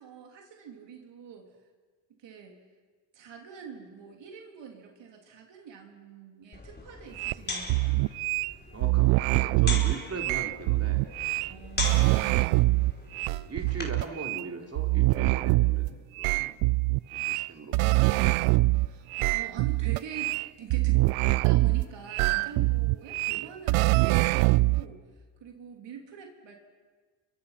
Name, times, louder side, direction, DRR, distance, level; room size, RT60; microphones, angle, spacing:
voice 1, 0.0-1.5 2.2-2.6 3.1-8.0 11.4-12.7 18.8-21.0 21.4-26.5, right 7 dB, 60° right, 2 dB, 3.4 m, -45 dB
sound 1, 6.5-14.1, left 2 dB, 20° left, 4.8 m, -39 dB
sound 2, 7.2-7.3 7.7-8.5 8.8-11.5 11.8-14.4 14.8-15.9 16.2-18.9 19.1-21.8 22.1-24.8, right 23 dB, 85° right, 0.6 m, -24 dB
voice 2, 8.7-11.1 11.9-12.3 13.2-16.5 17.1-18.0 23.3-23.5, right 4 dB, 30° right, 2 dB, 3.7 m, -40 dB
29.0 x 24.5 x 5.9 m, 1.5 s
supercardioid pair, 80°, 48 cm